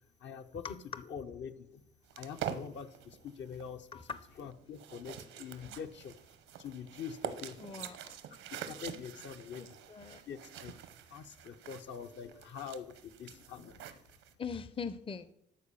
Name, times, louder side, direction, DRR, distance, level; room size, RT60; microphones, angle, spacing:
voice 1, 0.2-1.8 2.2-3.9 4.4-6.2 6.6-7.7 8.5-9.8 10.3-10.7 11.1-13.9, left 7 dB, 65° left, 7 dB, 0.9 m, -45 dB
sound 1, 2.1-14.3, right 9 dB, 90° right, 0.9 m, -46 dB
voice 2, 7.6-8.2 9.6-10.2 14.4-15.3, left 6 dB, 25° left, 13 dB, 0.6 m, -42 dB
12.5 x 4.5 x 7.0 m, 0.76 s
cardioid pair, 90°, 20 cm